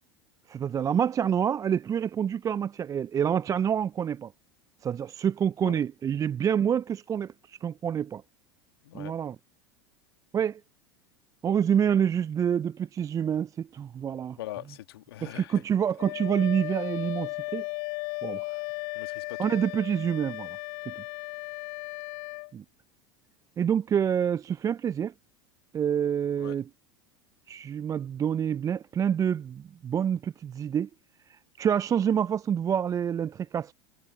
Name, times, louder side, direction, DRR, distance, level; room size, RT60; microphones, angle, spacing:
voice 1, 0.5-4.3 4.8-8.2 8.9-9.4 10.3-10.6 11.4-14.4 15.2-17.6 18.2-18.4 19.4-20.6 20.9-21.0 22.5-22.6 23.6-25.1 25.7-26.7 27.5-30.9 31.3-33.7, right 8 dB, 25° right, 0.4 m, -27 dB
voice 2, 14.4-15.6 19.0-19.4 26.4-26.6, left 14 dB, 70° left, 2.1 m, -41 dB
Wind instrument woodwind instrument, 16.0-22.5, left 30 dB, 50° left, 0.4 m, -36 dB
figure-of-eight pair, 80°, 13 cm